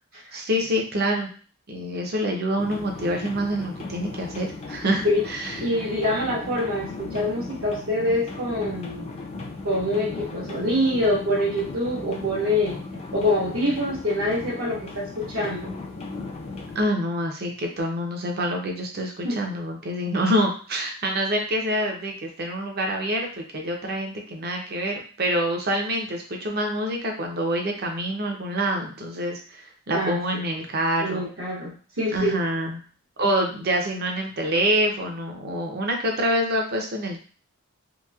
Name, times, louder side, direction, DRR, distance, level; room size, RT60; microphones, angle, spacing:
voice 1, 0.3-1.3 1.7-5.7 16.7-31.2 32.1-32.8 33.2-37.2, equal, 45° right, 2 dB, 0.6 m, -26 dB
sound 1, 2.6-16.8, left 3 dB, 30° left, 0.4 m, -36 dB
voice 2, 5.6-9.2 9.6-12.8 13.1-15.7 19.2-19.4 29.9-30.4 31.0-31.7 32.0-32.4, left 1 dB, 65° right, -8 dB, 1.0 m, -25 dB
3.0 x 2.6 x 2.3 m, 0.39 s
head